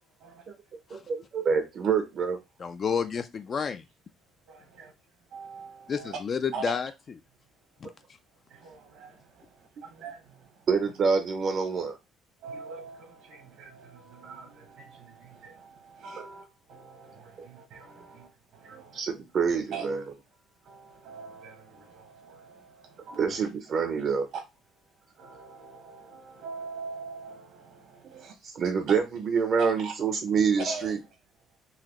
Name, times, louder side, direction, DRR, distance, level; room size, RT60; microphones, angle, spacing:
voice 1, 0.9-2.4 10.7-12.0 16.2-16.3 18.7-20.0 23.2-24.3 28.1-31.0, right 5 dB, 45° right, 0.6 m, -27 dB
voice 2, 2.6-3.8 5.9-6.9 7.8-7.9, left 6 dB, 35° left, 0.3 m, -30 dB
voice 3, 4.5-4.9 5.3-6.2 6.5-6.8 8.5-10.6 12.4-19.0 19.7-19.9 20.6-23.4 24.3-24.4 25.2-28.3 29.6-29.9 30.6-30.9, right 5 dB, 75° right, 1.1 m, -43 dB
4.0 x 2.7 x 3.0 m
cardioid pair, 125°, 0 cm